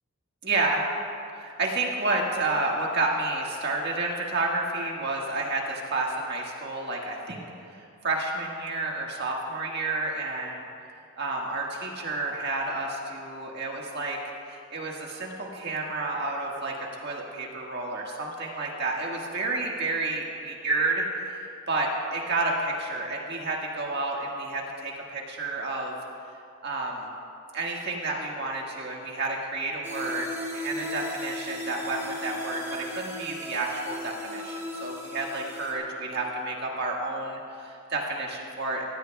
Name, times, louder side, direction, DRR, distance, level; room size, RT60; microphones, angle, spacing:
voice 1, 0.4-0.8 1.4-7.4 7.7-10.7 11.2-14.2 14.5-16.7 17.0-21.4 21.7-26.0 26.6-27.1 27.5-30.3 30.5-38.8, right 2 dB, 50° right, -1 dB, 1.7 m, -30 dB
sound 1, 29.8-35.7, left 1 dB, 10° right, 1.2 m, -36 dB
18.5 x 15.5 x 2.3 m, 2.5 s
head